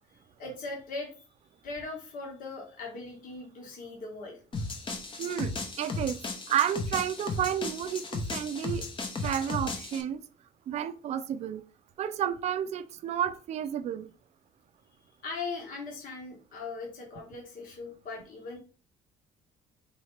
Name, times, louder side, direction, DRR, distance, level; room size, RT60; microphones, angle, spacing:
voice 1, 0.4-1.2 1.6-4.4 15.2-18.6, left 3 dB, 65° left, 1.3 m, -39 dB
sound 1, 4.5-10.0, left 3 dB, 35° left, 0.8 m, -35 dB
voice 2, 5.2-5.5 5.8-6.2 6.5-8.8 9.2-10.2 10.7-11.6 12.0-14.1, right 9 dB, 50° right, 0.4 m, -31 dB
3.9 x 2.8 x 3.2 m
cardioid pair, 95°, 15 cm